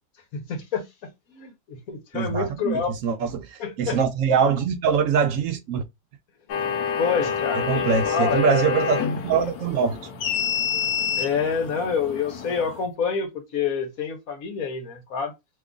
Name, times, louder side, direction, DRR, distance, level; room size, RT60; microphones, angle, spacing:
voice 1, 0.3-2.9 3.6-4.0 7.0-8.8 11.2-15.3, left 6 dB, 70° left, 1.3 m, -28 dB
voice 2, 2.1-5.8 7.7-10.0, right 6 dB, 70° right, 0.9 m, -23 dB
sound 1, 6.5-12.8, left 7 dB, 90° left, 1.3 m, -27 dB
3.0 x 2.4 x 3.7 m
omnidirectional pair, 1.6 m